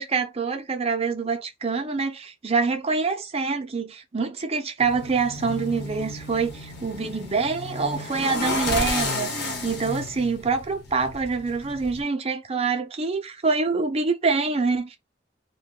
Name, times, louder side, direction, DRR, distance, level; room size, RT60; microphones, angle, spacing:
voice 1, 0.0-15.0, right 4 dB, 35° right, 0.6 m, -26 dB
sound 1, 4.8-12.0, left 2 dB, 65° left, 1.0 m, -32 dB
2.6 x 2.2 x 3.6 m
head